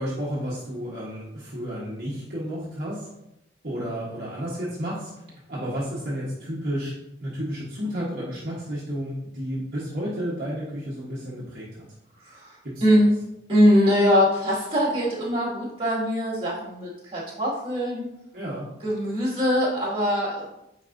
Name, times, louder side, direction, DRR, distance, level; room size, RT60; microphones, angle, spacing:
voice 1, 0.0-3.1 3.6-5.1 5.5-6.9 7.2-11.9 12.6-12.8 18.3-18.7, equal, 50° right, -7 dB, 1.3 m, -31 dB
voice 2, 12.2-13.1 13.5-18.1 18.8-20.5, equal, 30° right, -4 dB, 2.1 m, -22 dB
9.2 x 4.1 x 2.7 m, 0.86 s
head